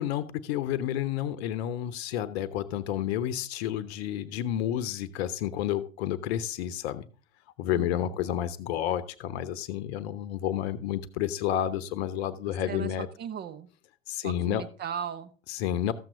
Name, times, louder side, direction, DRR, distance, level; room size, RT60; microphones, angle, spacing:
voice 1, 0.0-7.0 7.6-13.1 14.1-14.6 15.5-15.9, left 11 dB, 50° left, 15 dB, 0.9 m, -30 dB
voice 2, 7.7-8.2 12.7-13.7 14.2-15.3, right 8 dB, 25° right, 9 dB, 1.0 m, -37 dB
14.0 x 7.5 x 3.8 m, 0.38 s
figure-of-eight pair, 90°, 40 cm